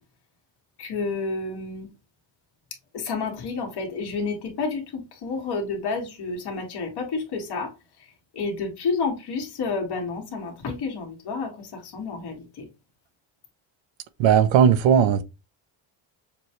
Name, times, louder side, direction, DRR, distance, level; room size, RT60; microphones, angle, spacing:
voice 1, 0.8-1.9 2.9-7.7 8.3-12.7, left 4 dB, 55° left, 1.8 m, -30 dB
voice 2, 14.2-15.2, right 8 dB, 70° right, 0.7 m, -17 dB
6.7 x 2.3 x 3.0 m
cardioid pair, 155°, 48 cm